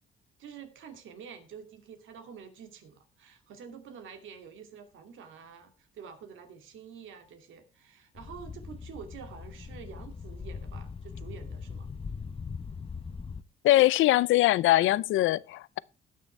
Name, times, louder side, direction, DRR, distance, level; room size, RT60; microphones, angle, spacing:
voice 1, 0.4-11.9, right 7 dB, 80° right, 2.6 m, -48 dB
sound 1, 8.1-13.4, left 5 dB, 30° left, 0.9 m, -40 dB
voice 2, 13.6-15.8, left 16 dB, 80° left, 0.6 m, -22 dB
19.5 x 6.7 x 3.4 m
cardioid pair, 90°, 20 cm